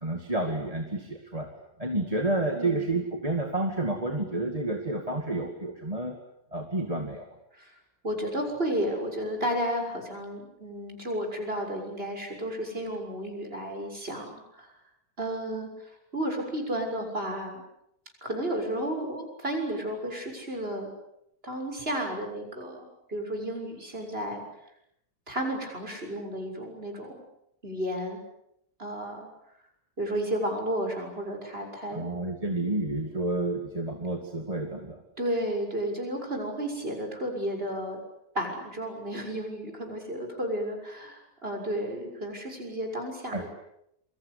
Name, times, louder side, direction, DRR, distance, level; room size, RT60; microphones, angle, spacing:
voice 1, 0.0-1.5 1.8-6.2 6.5-7.3 31.9-35.0 43.3-43.5, right 2 dB, 25° right, 3 dB, 2.5 m, -30 dB
voice 2, 8.0-14.7 15.2-17.6 18.2-20.9 21.4-24.4 25.3-27.2 27.6-28.2 28.8-29.3 30.0-32.1 35.2-38.0 38.4-43.5, right 1 dB, 40° right, 3 dB, 7.0 m, -32 dB
28.0 x 23.5 x 8.5 m, 0.77 s
omnidirectional pair, 1.6 m